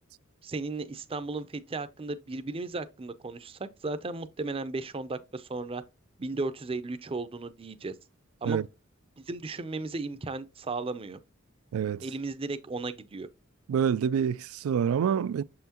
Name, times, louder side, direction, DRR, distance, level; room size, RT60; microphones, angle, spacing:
voice 1, 0.4-5.8 6.2-7.9 8.4-8.6 9.2-11.2 12.0-13.3, right 3 dB, 25° right, 0.5 m, -35 dB
voice 2, 11.7-12.0 13.7-15.4, right 8 dB, 90° right, 0.3 m, -27 dB
6.9 x 5.7 x 2.9 m
head